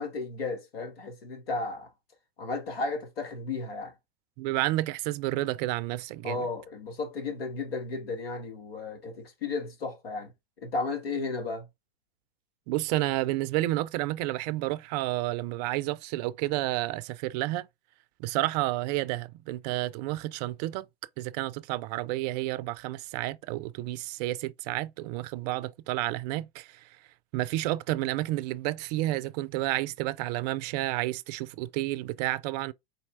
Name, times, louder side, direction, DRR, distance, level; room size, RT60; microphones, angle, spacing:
voice 1, 0.0-1.9 2.4-3.9 6.2-10.3 10.6-11.7, left 3 dB, 75° left, 1.8 m, -34 dB
voice 2, 4.4-6.5 12.7-17.7 18.2-20.9 21.2-27.0 27.3-32.7, right 17 dB, 45° right, 0.4 m, -30 dB
4.2 x 4.0 x 2.5 m
hypercardioid pair, 100°, 30 cm